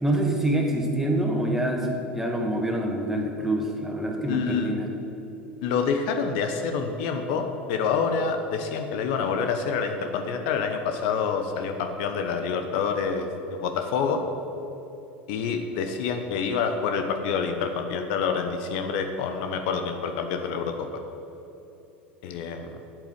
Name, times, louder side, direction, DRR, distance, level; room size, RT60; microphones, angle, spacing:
voice 1, 0.0-4.9, right 1 dB, 5° right, 1 dB, 2.1 m, -26 dB
voice 2, 4.3-4.7 5.6-13.3 13.6-14.2 15.3-20.7 22.2-22.7, left 6 dB, 60° left, 6 dB, 0.9 m, -27 dB
9.1 x 7.8 x 7.9 m, 3.0 s
hypercardioid pair, 80°, 6 cm